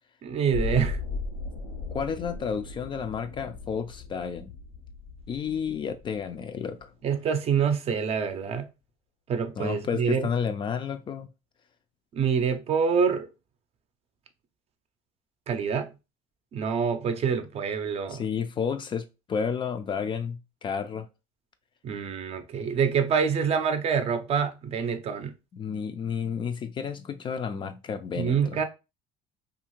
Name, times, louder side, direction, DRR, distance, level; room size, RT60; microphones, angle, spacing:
voice 1, 0.2-1.0 7.0-8.7 9.3-10.3 12.1-13.3 15.5-15.9 16.5-18.2 21.8-25.3 28.1-28.6, right 6 dB, 40° right, 0.5 m, -26 dB
sound 1, 0.5-6.5 6.8-6.9, left 3 dB, 85° left, 1.0 m, -36 dB
voice 2, 1.9-4.5 5.3-6.9 9.6-11.3 18.1-21.1 25.5-28.6, left 6 dB, 30° left, 0.3 m, -31 dB
2.7 x 2.4 x 3.0 m
supercardioid pair, 100°, 16 cm